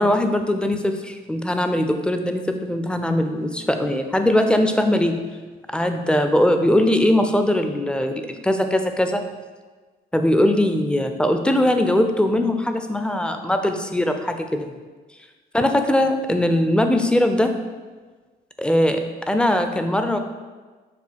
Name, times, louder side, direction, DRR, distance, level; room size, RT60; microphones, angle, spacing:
voice 1, 0.0-5.2 5.7-9.2 10.1-14.8 15.5-17.5 18.6-19.0 19.3-20.2, left 1 dB, 5° left, 6 dB, 0.4 m, -20 dB
6.6 x 2.3 x 3.5 m, 1.3 s
supercardioid pair, 60°, 21 cm